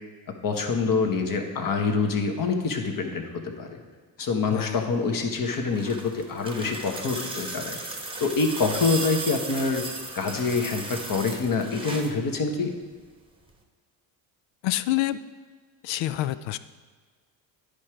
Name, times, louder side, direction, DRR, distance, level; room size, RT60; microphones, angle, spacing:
voice 1, 0.3-3.8 4.2-7.8 8.2-9.8 10.1-12.7, left 4 dB, 40° left, 4 dB, 1.3 m, -26 dB
voice 2, 4.2-4.9 14.6-15.2 15.8-16.6, left 15 dB, 65° left, 14 dB, 0.6 m, -28 dB
sound 1, 5.4-12.2 13.5-13.6, right 2 dB, 10° right, 1.0 m, -35 dB
10.5 x 5.0 x 4.5 m, 1.5 s
supercardioid pair, 80°, 49 cm